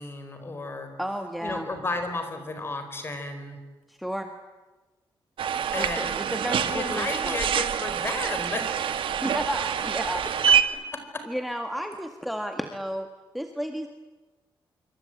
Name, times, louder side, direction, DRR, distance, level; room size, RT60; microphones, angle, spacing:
voice 1, 0.0-0.9 1.4-3.6 5.7-6.1 6.6-9.0 10.5-10.6 10.9-11.3, left 2 dB, 25° left, 7 dB, 4.6 m, -33 dB
voice 2, 1.0-1.7 3.9-4.3 5.8-7.4 9.2-10.2 11.3-13.1 13.3-13.9, equal, ahead, 5 dB, 1.6 m, -32 dB
sound 1, 5.4-10.6, right 8 dB, 80° right, 1.8 m, -26 dB
27.0 x 24.5 x 9.1 m, 1.2 s
wide cardioid pair, 160°, 9 cm